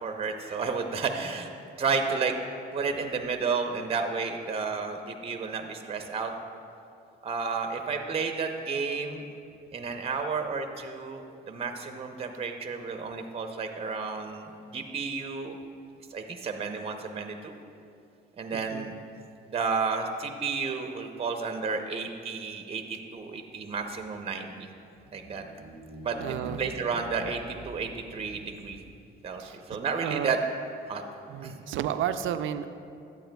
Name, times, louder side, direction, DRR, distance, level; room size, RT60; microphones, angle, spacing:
voice 1, 0.0-1.5 1.8-2.4 2.7-6.3 7.2-9.2 9.7-15.6 16.1-17.6 18.4-18.9 19.5-24.5 25.1-25.4 26.0-26.2 26.6-28.8 29.2-30.4 30.9-31.0 31.4-31.6, right 5 dB, 30° right, 5 dB, 0.6 m, -32 dB
voice 2, 18.5-18.9 26.2-26.7 28.3-28.5 29.4-30.4 31.3-32.7, right 10 dB, 75° right, 10 dB, 0.4 m, -33 dB
sound 1, 24.8-29.2, equal, 40° left, 1.4 m, -46 dB
11.5 x 8.3 x 2.2 m, 2.5 s
cardioid pair, 90°, 20 cm